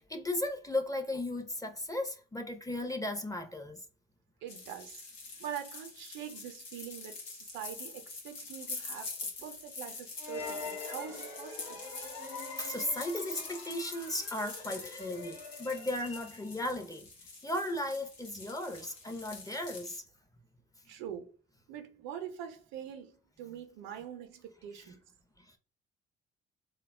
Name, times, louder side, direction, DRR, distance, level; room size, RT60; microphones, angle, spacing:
voice 1, 0.1-3.8 12.6-17.1 17.4-20.0, left 1 dB, 10° left, 0.6 m, -36 dB
voice 2, 4.4-5.0 5.4-11.8 20.9-21.4 21.7-25.0, right 9 dB, 65° right, 0.6 m, -44 dB
sound 1, 4.5-20.0, left 3 dB, 80° left, 0.7 m, -45 dB
sound 2, 10.2-16.7, left 4 dB, 60° left, 1.0 m, -44 dB
2.1 x 2.0 x 3.4 m
figure-of-eight pair, 45°, 29 cm